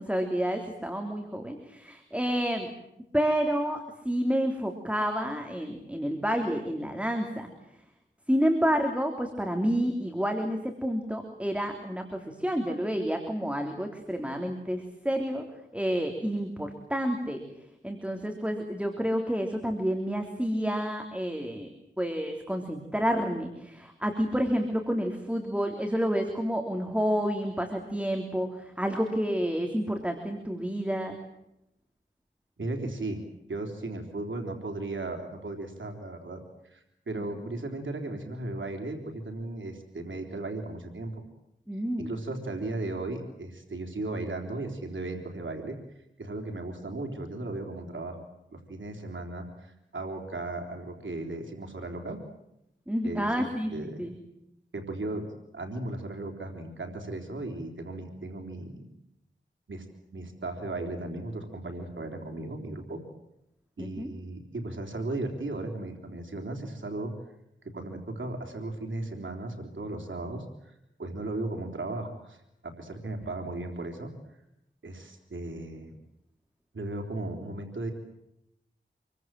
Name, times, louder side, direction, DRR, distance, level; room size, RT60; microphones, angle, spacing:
voice 1, 0.0-2.7 3.1-7.5 8.3-15.5 15.7-17.4 17.8-21.7 22.0-31.2 37.4-37.5 41.7-42.1 52.9-53.7 54.0-54.1 63.8-64.1, equal, 5° right, 3 dB, 3.4 m, -29 dB
voice 2, 32.6-33.2 33.5-41.2 42.0-45.8 46.2-48.2 48.5-52.2 53.0-53.4 53.7-54.0 54.7-55.3 55.5-58.8 59.7-59.9 60.1-63.0 63.8-67.1 67.6-74.1 74.8-76.0 76.7-77.9, right 2 dB, 90° right, 3 dB, 3.7 m, -36 dB
27.0 x 23.5 x 7.7 m, 0.82 s
wide cardioid pair, 70°, 19 cm